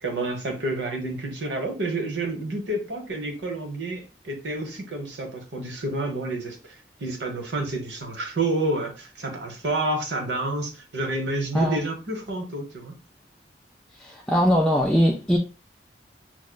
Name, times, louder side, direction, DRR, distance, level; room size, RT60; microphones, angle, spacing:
voice 1, 0.0-13.0, right 2 dB, 85° right, 1.0 m, -29 dB
voice 2, 14.0-15.4, equal, 5° left, 0.3 m, -21 dB
6.2 x 2.1 x 2.2 m
head